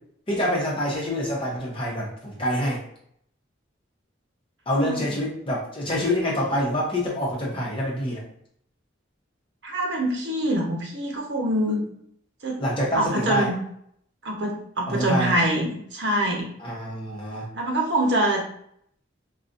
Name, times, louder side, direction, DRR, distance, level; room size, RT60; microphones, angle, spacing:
voice 1, 0.3-2.8 4.7-8.2 12.6-13.5 14.9-15.3 16.6-17.5, equal, 30° left, -4 dB, 0.9 m, -26 dB
voice 2, 4.7-5.1 9.6-11.8 12.4-12.6 12.9-13.6 14.2-16.5 17.5-18.4, right 1 dB, 65° right, 0 dB, 0.9 m, -25 dB
3.9 x 2.4 x 2.5 m, 0.69 s
head